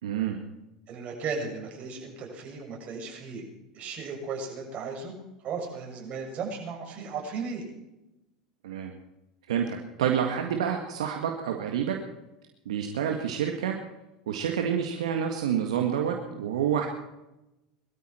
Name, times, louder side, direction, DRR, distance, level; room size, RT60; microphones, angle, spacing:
voice 1, 0.0-0.4 8.6-8.9 9.5-12.0 12.7-13.8 14.3-16.9, right 8 dB, 80° right, 2 dB, 1.8 m, -28 dB
voice 2, 0.9-3.4 3.7-5.1 5.4-7.6 13.0-13.1, right 5 dB, 45° right, 1 dB, 6.7 m, -36 dB
21.5 x 13.0 x 4.5 m, 0.95 s
hypercardioid pair, 85°, 3 cm